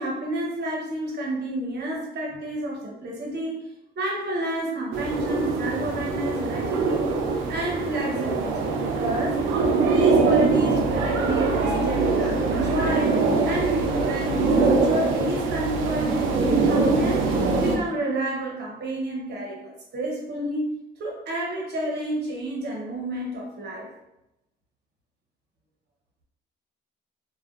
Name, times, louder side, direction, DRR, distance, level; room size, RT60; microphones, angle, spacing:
voice 1, 0.0-3.7 4.0-7.1 7.5-9.4 9.8-13.2 13.4-17.3 17.6-20.6 21.0-23.9, right 1 dB, 55° right, -2 dB, 0.8 m, -30 dB
sound 1, 4.9-17.8, right 3 dB, 85° right, 0.4 m, -23 dB
2.4 x 2.1 x 2.4 m, 0.88 s
cardioid pair, 90°, 20 cm